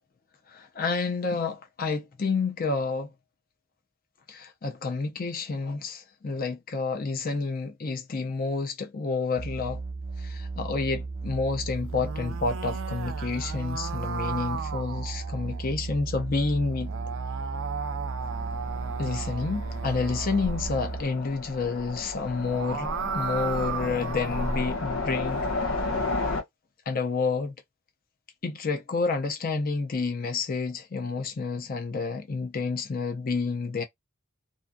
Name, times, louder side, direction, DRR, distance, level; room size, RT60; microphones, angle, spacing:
voice 1, 0.5-3.1 4.3-9.8 10.2-16.9 19.0-25.5 26.9-27.5 28.4-33.8, left 4 dB, 45° left, 0.5 m, -29 dB
sound 1, 9.4-21.0, right 3 dB, 25° right, 0.7 m, -35 dB
sound 2, 11.8-15.7 16.7-20.9 22.3-24.8, right 6 dB, 70° right, 0.4 m, -36 dB
Train, 18.2-26.4, left 2 dB, 75° left, 0.9 m, -33 dB
2.6 x 2.2 x 2.5 m
head